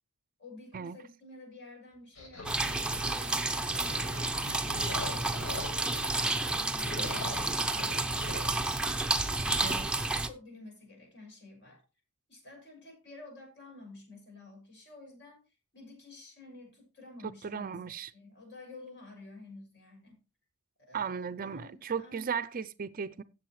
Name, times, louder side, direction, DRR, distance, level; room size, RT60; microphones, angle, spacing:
voice 1, 0.4-5.5 5.8-8.8 10.3-11.8 12.3-15.4 15.7-17.8 18.1-20.2 20.8-22.4, left 2 dB, 55° left, 6.6 m, -51 dB
sound 1, 2.2-6.0 6.4-8.6, left 2 dB, 75° left, 6.1 m, -43 dB
sound 2, 2.5-10.3, right 2 dB, 5° right, 0.7 m, -31 dB
voice 2, 9.6-10.1 17.2-18.1 20.9-23.2, right 6 dB, 40° right, 0.5 m, -36 dB
15.5 x 7.5 x 3.1 m
head